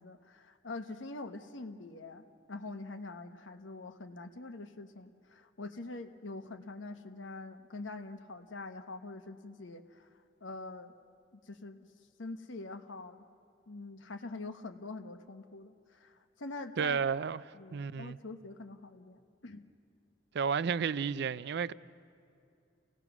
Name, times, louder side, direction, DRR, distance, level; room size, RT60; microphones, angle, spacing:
voice 1, 0.0-10.1 10.4-10.9 11.3-11.9 12.2-13.2 13.7-17.0 17.5-19.6, left 2 dB, 90° left, 1.1 m, -44 dB
voice 2, 16.8-17.4 17.7-18.2 20.3-21.7, right 6 dB, 60° right, 0.4 m, -32 dB
29.5 x 17.5 x 6.0 m
head